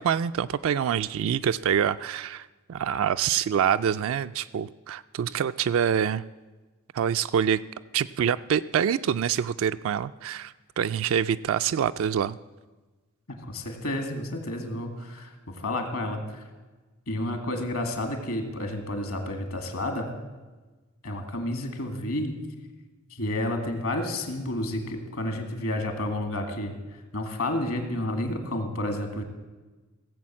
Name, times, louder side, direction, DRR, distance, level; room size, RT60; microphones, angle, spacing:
voice 1, 0.0-6.2 6.9-7.6 7.9-12.4, right 8 dB, 65° right, 11 dB, 0.3 m, -26 dB
voice 2, 13.3-16.4 17.1-20.1 21.0-22.3 23.1-26.7 27.1-29.2, left 1 dB, 70° left, 5 dB, 2.1 m, -30 dB
17.0 x 7.7 x 7.4 m, 1.2 s
head